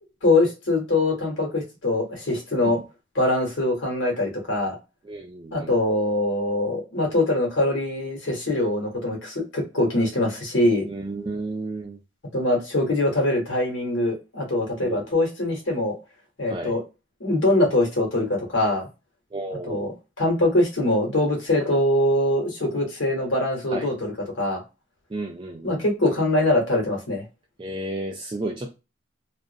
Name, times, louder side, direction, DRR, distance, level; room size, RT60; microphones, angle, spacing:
voice 1, 0.2-2.8 3.1-4.8 5.5-10.9 12.3-16.0 16.4-16.8 17.2-18.9 19.7-19.9 20.2-24.6 25.6-27.2, left 1 dB, 70° left, 1.1 m, -23 dB
voice 2, 5.0-5.7 10.9-12.0 14.8-15.1 16.5-16.7 19.3-19.8 23.7-23.9 25.1-25.8 27.6-28.7, right 2 dB, 25° right, 0.4 m, -32 dB
2.4 x 2.0 x 2.4 m
head